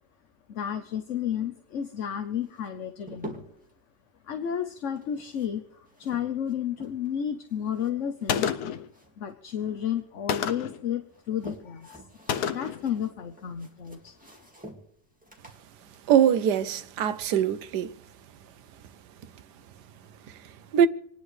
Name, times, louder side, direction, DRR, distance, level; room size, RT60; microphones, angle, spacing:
voice 1, 0.5-3.4 4.3-8.5 9.2-12.1 12.5-14.1, left 9 dB, 55° left, 1.1 m, -32 dB
sound 1, 2.4-3.7 4.9-7.2 7.5-9.3 9.6-10.5 11.0-17.1, right 1 dB, 5° right, 1.9 m, -48 dB
Gunshot gunfire, 8.3-8.9 10.3-10.8 12.3-12.9, left 8 dB, 70° left, 1.2 m, -29 dB
voice 2, 16.1-17.9 20.7-20.9, right 9 dB, 80° right, 1.4 m, -22 dB
28.0 x 10.0 x 3.2 m
omnidirectional pair, 1.8 m